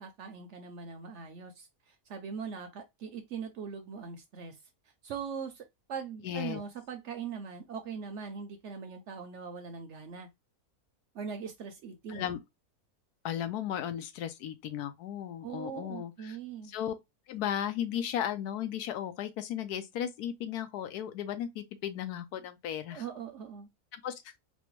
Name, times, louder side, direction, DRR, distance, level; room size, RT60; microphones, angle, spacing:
voice 1, 0.0-4.6 5.0-10.3 11.1-12.3 15.4-16.7 22.9-23.7, right 6 dB, 65° right, 0.7 m, -41 dB
voice 2, 6.2-6.6 12.1-12.4 13.2-16.4 16.7-16.9 17.3-23.0 23.9-24.3, left 10 dB, 90° left, 1.2 m, -35 dB
4.2 x 2.1 x 3.0 m
omnidirectional pair, 1.6 m